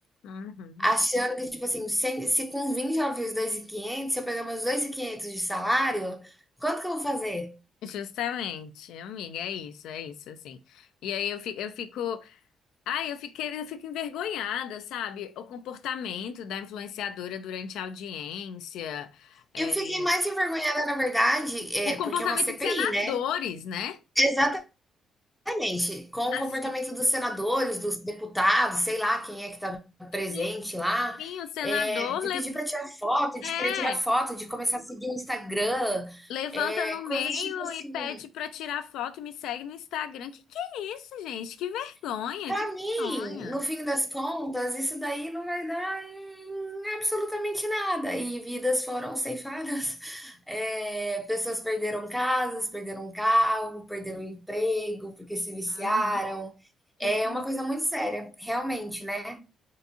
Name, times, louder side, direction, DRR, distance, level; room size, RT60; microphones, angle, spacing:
voice 1, 0.2-0.8 7.8-12.4 12.9-20.1 21.8-24.0 26.3-26.7 30.3-30.5 31.2-32.5 33.4-34.0 36.3-42.5 43.0-43.6 55.7-56.1 57.0-57.4, left 9 dB, 85° left, 0.3 m, -34 dB
voice 2, 0.8-6.3 6.6-7.5 19.6-23.2 24.2-24.6 25.5-31.3 31.6-38.2 42.5-56.5 57.0-59.4, equal, ahead, 0.5 m, -29 dB
3.6 x 2.6 x 2.7 m
cardioid pair, 90°, 0 cm